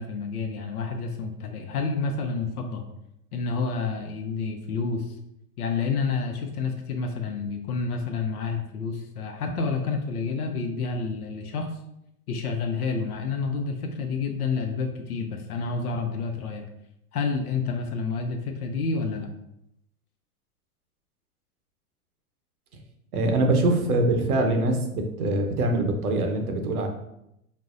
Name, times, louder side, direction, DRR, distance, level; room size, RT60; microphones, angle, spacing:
voice 1, 0.0-2.8 3.3-5.2 5.6-11.7 12.3-16.6 17.1-19.3, left 4 dB, 85° left, 4 dB, 0.7 m, -29 dB
voice 2, 23.1-26.9, right 2 dB, 80° right, 4 dB, 0.9 m, -23 dB
5.3 x 2.1 x 2.5 m, 0.81 s
hypercardioid pair, 110°, 43 cm